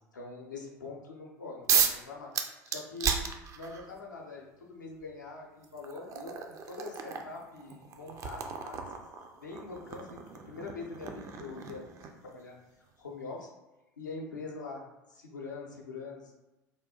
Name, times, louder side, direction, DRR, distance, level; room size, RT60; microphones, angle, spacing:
voice 1, 0.0-8.9 9.4-13.5 14.0-16.3, left 3 dB, 80° left, -1 dB, 0.6 m, -44 dB
sound 1, 1.7-2.0 2.3-3.9 5.0-5.1 5.6-12.3, right 7 dB, 30° right, 0.3 m, -34 dB
3.3 x 2.3 x 2.7 m, 1.0 s
figure-of-eight pair, 70°, 10 cm